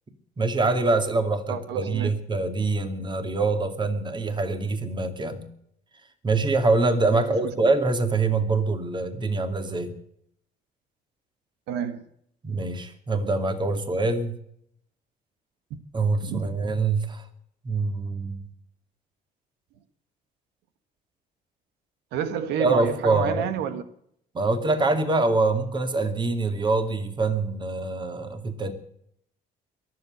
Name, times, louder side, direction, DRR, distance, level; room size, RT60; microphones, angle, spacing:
voice 1, 0.4-5.5 6.2-9.9 12.4-14.4 15.9-17.3 17.6-18.4 22.6-23.5 24.3-28.7, right 3 dB, 25° right, 2.4 m, -24 dB
voice 2, 1.5-2.1 7.1-7.2 7.6-7.7 11.7-12.1 16.2-16.5 22.1-23.8, right 8 dB, 90° right, 1.4 m, -29 dB
22.5 x 7.8 x 7.9 m
cardioid pair, 110°, 17 cm